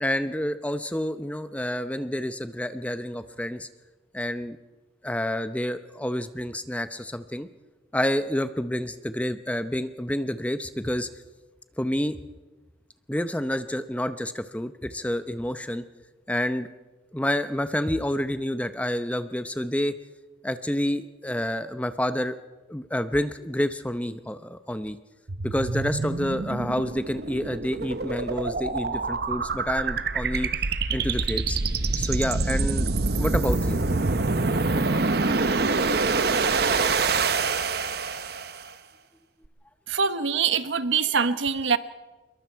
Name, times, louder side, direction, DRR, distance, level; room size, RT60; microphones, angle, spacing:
voice 1, 0.0-3.7 4.1-4.6 5.0-7.5 7.9-11.1 11.8-12.2 13.1-15.8 16.3-16.7 17.1-20.0 20.4-22.4 22.7-25.0 25.4-30.5 30.9-31.6 32.0-32.9 33.2-33.8 34.4-34.8, left 1 dB, 5° left, 10 dB, 0.7 m, -28 dB
sound 1, 25.3-38.7, right 3 dB, 55° right, 0.9 m, -26 dB
voice 2, 39.9-41.8, right 6 dB, 75° right, 12 dB, 1.0 m, -24 dB
25.5 x 22.5 x 4.6 m, 1.2 s
head